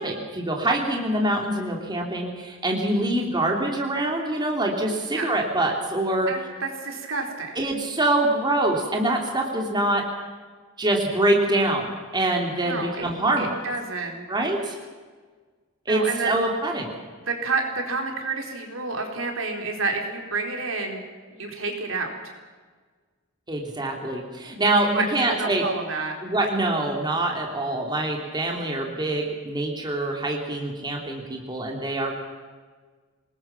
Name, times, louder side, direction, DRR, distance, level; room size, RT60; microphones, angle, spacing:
voice 1, 0.0-6.3 7.6-10.0 10.8-13.6 14.3-14.7 15.9-17.0 23.5-25.6 26.2-32.2, right 1 dB, 20° right, 0 dB, 3.1 m, -25 dB
voice 2, 6.3-7.5 12.6-13.1 13.4-14.3 15.9-16.3 17.3-21.0 21.3-22.1 24.9-26.1, right 3 dB, 70° right, 2 dB, 4.5 m, -29 dB
27.0 x 20.0 x 6.0 m, 1.4 s
head